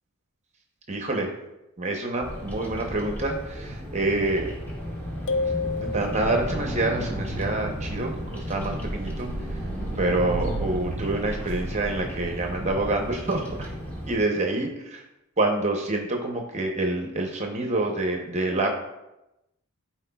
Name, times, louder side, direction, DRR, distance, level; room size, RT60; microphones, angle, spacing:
voice 1, 0.9-1.3 1.8-4.5 5.8-9.6 9.9-13.7 14.1-15.0 15.4-18.7, right 2 dB, 35° right, 2 dB, 0.8 m, -27 dB
Bird vocalization bird call bird song, 2.2-14.2, equal, 10° left, 1.4 m, -34 dB
sound 1, 5.3-6.8, left 4 dB, 60° left, 0.5 m, -29 dB
sound 2, 7.6-11.8, right 2 dB, 60° right, 0.4 m, -36 dB
12.5 x 4.4 x 2.3 m, 0.92 s
head